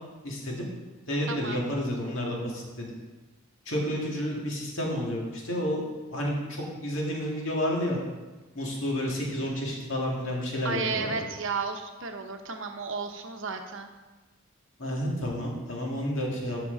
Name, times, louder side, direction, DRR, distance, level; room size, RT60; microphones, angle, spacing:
voice 1, 0.2-0.6 1.1-2.9 3.7-5.8 6.1-8.0 8.6-11.2 14.8-16.6, equal, 60° left, -2 dB, 2.1 m, -30 dB
voice 2, 1.3-1.6 10.6-13.9, right 4 dB, 60° right, 5 dB, 0.9 m, -33 dB
12.0 x 6.1 x 3.9 m, 1.2 s
head